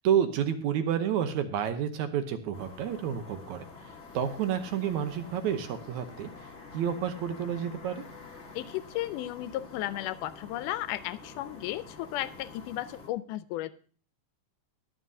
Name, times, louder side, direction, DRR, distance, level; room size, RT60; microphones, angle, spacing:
voice 1, 0.0-3.6 4.1-6.3 6.7-8.0, right 9 dB, 70° right, 8 dB, 2.2 m, -29 dB
sound 1, 2.5-13.1, left 4 dB, 45° left, 0.9 m, -48 dB
voice 2, 8.6-13.7, left 14 dB, 85° left, 15 dB, 2.2 m, -34 dB
21.0 x 7.4 x 2.7 m, 0.43 s
omnidirectional pair, 3.6 m